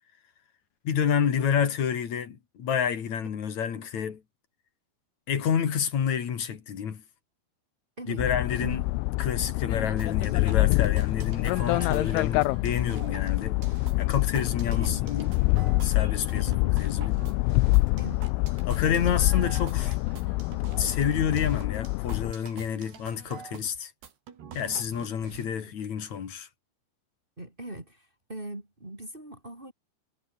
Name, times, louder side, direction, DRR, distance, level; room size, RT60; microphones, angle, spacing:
voice 1, 0.8-4.2 5.3-7.0 8.1-8.8 9.2-13.6 14.0-15.3 15.8-17.2 18.6-20.0 20.8-23.9 24.5-26.5, left 8 dB, 45° left, 2.9 m, -29 dB
sound 1, 8.2-22.3, left 24 dB, 85° left, 3.0 m, -26 dB
sound 2, 10.0-25.4, right 8 dB, 55° right, 5.2 m, -46 dB
voice 2, 14.7-15.3 16.4-16.6 18.0-18.2 25.6-25.7 27.4-29.7, right 1 dB, 15° right, 2.5 m, -40 dB
omnidirectional pair, 5.9 m